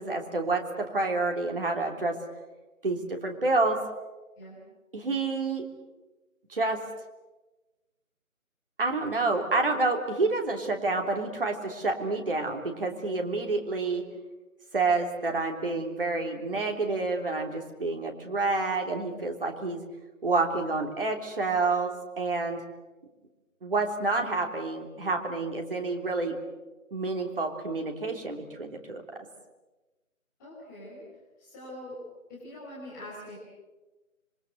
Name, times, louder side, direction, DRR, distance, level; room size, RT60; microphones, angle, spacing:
voice 1, 0.0-2.2 2.8-3.8 4.9-5.6 6.5-6.8 8.8-14.0 14.7-19.8 20.2-22.6 23.6-26.3 26.9-29.0, right 3 dB, 40° right, 2 dB, 3.3 m, -28 dB
voice 2, 30.4-31.0 31.4-31.9 32.3-33.4, left 1 dB, 15° left, -8 dB, 5.2 m, -43 dB
26.5 x 23.5 x 8.0 m, 1.2 s
figure-of-eight pair, 165°, 41 cm